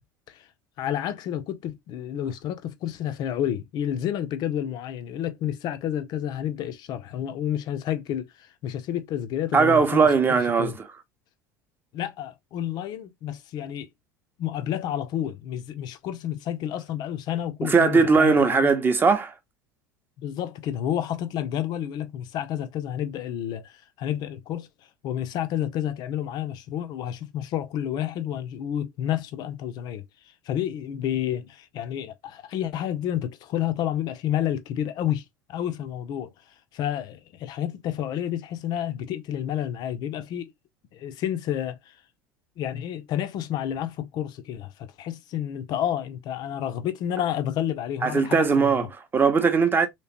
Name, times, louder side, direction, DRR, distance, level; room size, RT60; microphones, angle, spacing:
voice 1, 0.8-8.3 8.6-10.8 11.9-13.9 14.4-18.7 20.2-24.7 25.0-30.0 30.5-35.2 35.5-36.3 36.7-40.5 40.9-41.8 42.6-48.9, left 10 dB, 40° left, 0.5 m, -30 dB
voice 2, 9.5-10.9 17.6-19.3 48.0-49.9, right 5 dB, 20° right, 0.7 m, -20 dB
3.2 x 2.9 x 2.8 m
figure-of-eight pair, 75°, 11 cm